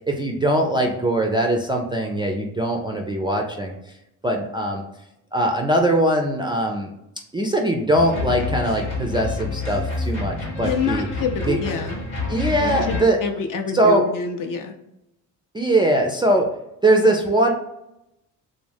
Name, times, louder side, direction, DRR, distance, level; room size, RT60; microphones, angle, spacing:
voice 1, 0.1-3.7 4.2-4.8 5.3-6.9 7.3-11.1 11.5-11.6 12.3-13.2 13.7-14.0 15.5-16.5 16.8-17.5, right 1 dB, 10° right, 0 dB, 0.3 m, -21 dB
sound 1, 7.9-13.0, left 3 dB, 85° left, 1.2 m, -28 dB
voice 2, 10.6-12.0 12.6-14.7, left 5 dB, 50° left, 5 dB, 0.5 m, -27 dB
2.4 x 2.1 x 3.3 m, 0.86 s
hypercardioid pair, 55°, 43 cm